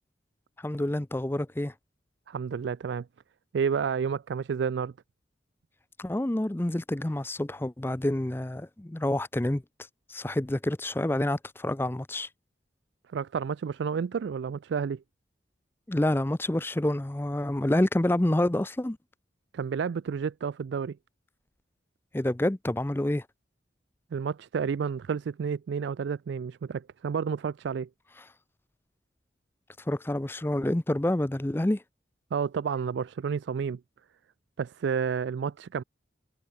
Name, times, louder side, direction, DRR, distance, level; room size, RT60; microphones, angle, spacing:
voice 1, 0.6-1.7 6.0-9.6 10.1-12.3 15.9-19.0 22.1-23.3 29.9-31.8, left 1 dB, 10° left, 0.5 m, -28 dB
voice 2, 2.3-3.1 3.5-4.9 13.1-15.0 19.5-21.0 24.1-27.9 32.3-33.8 34.6-35.8, right 6 dB, 70° right, 0.3 m, -30 dB
head